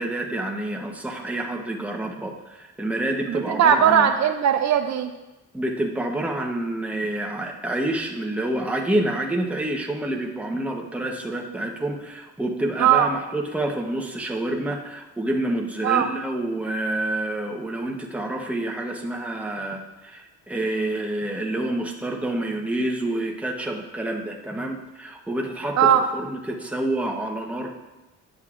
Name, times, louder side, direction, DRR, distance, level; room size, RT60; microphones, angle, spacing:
voice 1, 0.0-4.1 5.5-27.7, right 1 dB, 5° right, 0 dB, 0.9 m, -28 dB
voice 2, 3.3-5.1 12.8-13.1 15.8-16.1 25.8-26.0, right 9 dB, 60° right, 7 dB, 0.5 m, -19 dB
10.0 x 6.5 x 2.5 m, 1.0 s
cardioid pair, 90°, 30 cm